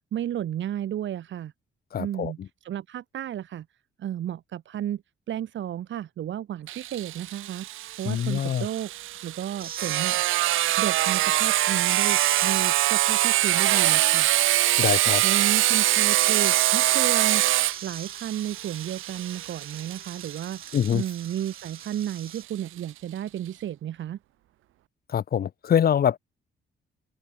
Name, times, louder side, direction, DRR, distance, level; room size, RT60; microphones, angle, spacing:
voice 1, 0.1-1.5 2.0-2.4 2.6-3.7 4.0-5.0 5.3-7.7 8.0-8.9 9.2-10.2 10.8-14.3 15.2-17.4 17.8-24.2, right 11 dB, 70° right, 3.8 m, -32 dB
voice 2, 1.9-2.5 8.0-8.7 14.8-15.2 20.7-21.0 25.1-26.2, left 9 dB, 50° left, 0.9 m, -24 dB
Sawing, 6.7-22.1, right 15 dB, 85° right, 2.1 m, -24 dB
sound 1, 9.6-22.4, right 7 dB, 50° right, 6.3 m, -42 dB
open air
cardioid pair, 90°, 20 cm